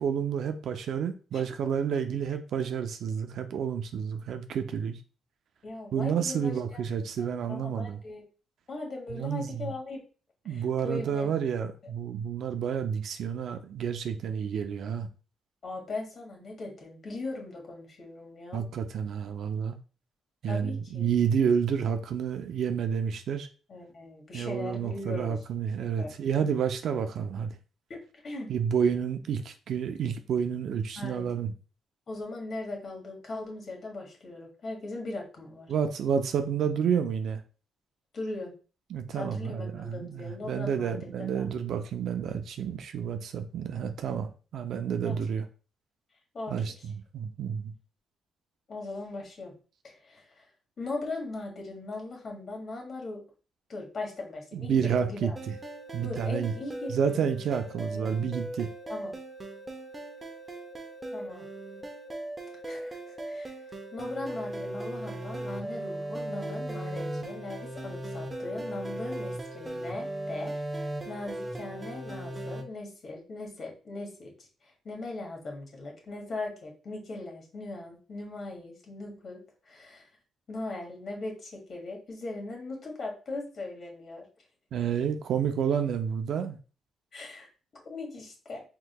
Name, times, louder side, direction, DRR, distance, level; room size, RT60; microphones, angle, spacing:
voice 1, 0.0-5.0 5.9-8.0 9.1-9.7 10.5-15.1 18.5-19.8 20.4-23.5 24.3-27.6 28.5-31.5 35.7-37.4 38.9-45.5 46.5-47.7 54.5-55.5 55.9-56.5 56.9-58.7 84.7-86.6, right 7 dB, 70° right, 0.5 m, -30 dB
voice 2, 5.6-6.8 7.5-8.2 8.7-10.0 10.4-11.3 15.6-18.6 20.4-21.1 23.7-25.4 25.9-26.1 27.9-28.5 31.0-31.3 32.1-35.7 38.1-38.5 39.1-41.1 41.3-41.4 45.0-45.2 46.3-46.6 48.7-49.5 49.8-50.5 50.8-53.2 53.7-55.4 56.0-57.0 57.9-58.1 58.9-59.1 61.1-61.4 62.6-63.5 63.9-70.7 71.1-80.1 80.5-84.3 87.1-87.5 87.8-88.6, left 2 dB, 45° left, 1.8 m, -39 dB
sound 1, 55.4-72.6, right 1 dB, 20° right, 0.8 m, -38 dB
4.5 x 3.7 x 2.2 m
cardioid pair, 90°, 0 cm